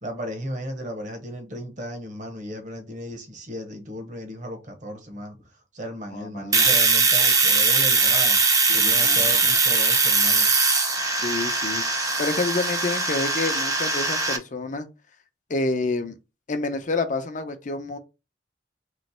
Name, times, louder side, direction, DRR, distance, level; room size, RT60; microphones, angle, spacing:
voice 1, 0.0-8.4 8.7-10.5, equal, 45° right, 1.1 m, -35 dB
voice 2, 6.1-6.7 8.7-9.3 11.1-11.8 12.2-14.9 15.5-16.2 16.5-18.0, left 3 dB, 45° left, 0.7 m, -28 dB
Domestic sounds home sounds, 6.5-14.4, right 4 dB, 20° right, 0.6 m, -21 dB
3.2 x 3.1 x 4.3 m
head